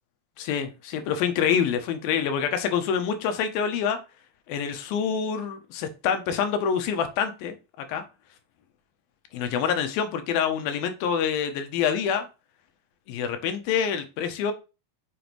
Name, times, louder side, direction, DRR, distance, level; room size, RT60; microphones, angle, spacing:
voice 1, 0.4-4.0 4.5-8.0 9.3-12.3 13.1-14.5, left 7 dB, 80° left, 2.5 m, -26 dB
6.9 x 5.0 x 3.1 m
omnidirectional pair, 4.5 m